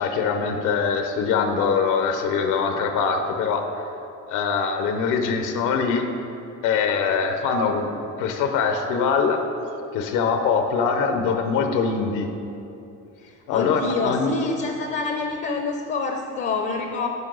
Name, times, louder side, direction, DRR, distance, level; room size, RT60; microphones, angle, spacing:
voice 1, 0.0-3.9 4.3-6.1 6.6-7.9 8.2-9.4 9.9-12.3 13.5-14.3, left 5 dB, 85° left, 6 dB, 0.7 m, -23 dB
voice 2, 13.2-17.1, left 4 dB, 35° left, 4 dB, 0.5 m, -27 dB
9.6 x 5.4 x 3.8 m, 2.8 s
cardioid pair, 155°, 30 cm